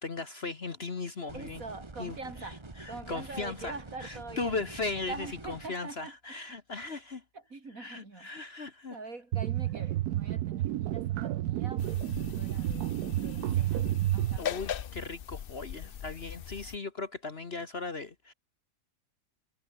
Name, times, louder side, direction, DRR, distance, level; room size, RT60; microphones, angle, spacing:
voice 1, 0.0-1.6 2.0-3.7 4.0-7.2 7.8-9.0 14.4-18.3, left 3 dB, 40° left, 1.5 m, -37 dB
sound 1, 1.3-5.7, right 2 dB, 20° right, 1.5 m, -47 dB
voice 2, 1.3-2.6 2.9-4.6 5.1-6.1 7.3-8.5 8.9-13.9 14.1-14.5 15.8-15.9, right 3 dB, 55° right, 3.8 m, -44 dB
sound 2, 9.3-14.4, right 14 dB, 70° right, 1.1 m, -30 dB
sound 3, 11.8-16.8, left 9 dB, 70° left, 0.5 m, -40 dB
omnidirectional pair, 1.8 m